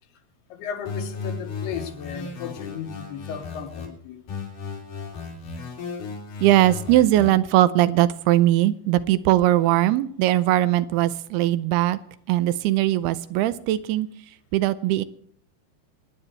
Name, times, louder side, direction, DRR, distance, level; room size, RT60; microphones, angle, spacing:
voice 1, 0.5-4.2, left 7 dB, 90° left, 3.4 m, -35 dB
sound 1, 0.9-3.9 4.3-7.3, left 5 dB, 75° left, 5.4 m, -35 dB
voice 2, 6.4-12.0 12.3-14.1 14.5-15.0, right 15 dB, 85° right, 2.7 m, -20 dB
25.5 x 10.0 x 3.3 m
omnidirectional pair, 4.5 m